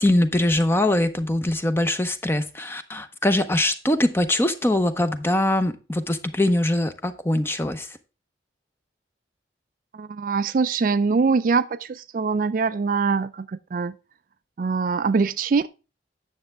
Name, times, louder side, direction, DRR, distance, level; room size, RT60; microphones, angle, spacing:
voice 1, 0.0-8.0, left 1 dB, 15° left, 0.6 m, -22 dB
voice 2, 9.9-13.9 14.6-15.7, right 4 dB, 45° right, 0.3 m, -23 dB
9.5 x 6.8 x 3.4 m
head